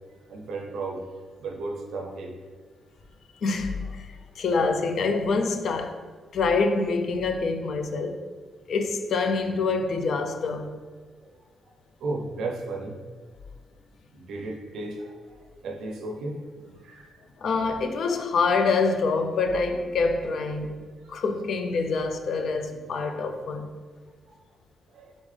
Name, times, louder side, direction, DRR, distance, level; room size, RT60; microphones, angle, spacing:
voice 1, 0.3-1.0 1.4-2.3 11.2-11.3 12.0-13.0 14.1-17.2 21.0-21.2 24.9-25.1, right 2 dB, 85° right, 0.4 m, -35 dB
voice 2, 3.4-6.0 6.3-8.2 8.7-10.8 17.4-20.8 21.1-23.7, left 4 dB, 60° left, 0.4 m, -26 dB
3.8 x 3.7 x 3.2 m
cardioid pair, 130°, 0 cm